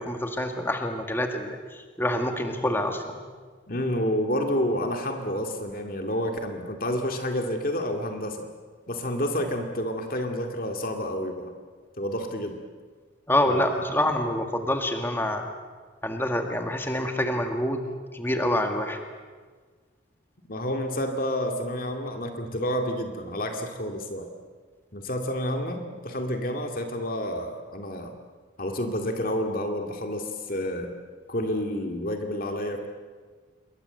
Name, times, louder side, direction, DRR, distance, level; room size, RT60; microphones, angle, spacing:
voice 1, 0.0-3.2 13.3-15.4 16.0-17.9 18.1-19.0, left 1 dB, 10° left, 4 dB, 1.9 m, -26 dB
voice 2, 3.7-8.5 8.9-11.5 12.0-12.6 13.5-14.1 20.4-24.3 24.9-28.1 28.6-30.9 31.3-32.9, equal, 45° left, 4 dB, 2.2 m, -29 dB
27.5 x 23.0 x 7.9 m, 1.5 s
head